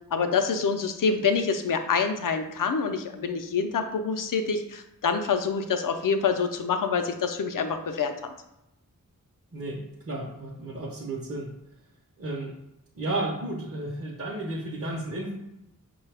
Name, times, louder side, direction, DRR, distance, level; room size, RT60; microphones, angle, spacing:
voice 1, 0.1-8.1, left 5 dB, 70° left, 7 dB, 0.5 m, -26 dB
voice 2, 9.5-11.5 12.2-12.5 13.0-15.3, right 2 dB, 40° right, -3 dB, 0.7 m, -33 dB
5.5 x 2.3 x 3.3 m, 0.88 s
wide cardioid pair, 80°, 34 cm